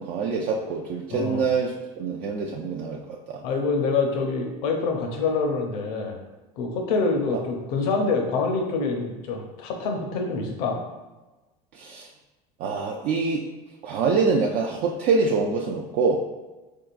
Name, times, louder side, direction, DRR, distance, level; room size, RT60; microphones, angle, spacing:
voice 1, 0.0-3.4 11.7-12.1 12.6-13.5 13.8-16.2, right 4 dB, 50° right, 0 dB, 0.4 m, -25 dB
voice 2, 1.1-1.4 3.4-6.2 6.6-10.8, left 4 dB, 75° left, 3 dB, 0.7 m, -26 dB
3.7 x 3.5 x 2.4 m, 1.2 s
supercardioid pair, 90°, 20 cm